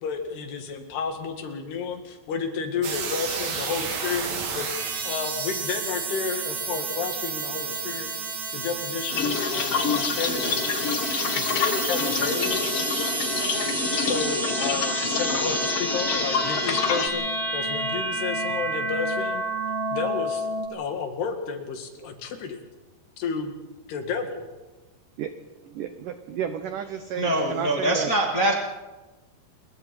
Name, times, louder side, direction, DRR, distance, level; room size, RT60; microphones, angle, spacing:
voice 1, 0.0-4.2 4.5-4.7 5.1-8.1 8.5-10.9 11.3-12.6 14.0-17.3 17.5-19.4 19.9-22.6 23.2-24.5, left 5 dB, 65° left, 5 dB, 4.0 m, -31 dB
sound 1, 2.8-20.7, right 3 dB, 50° right, 2.8 m, -30 dB
sound 2, 9.1-17.1, left 6 dB, 90° left, 1.3 m, -27 dB
voice 2, 25.6-28.1, right 8 dB, 85° right, 8 dB, 1.8 m, -32 dB
voice 3, 27.2-28.5, right 1 dB, 35° left, -1 dB, 1.4 m, -23 dB
28.5 x 22.0 x 4.4 m, 1.1 s
omnidirectional pair, 5.2 m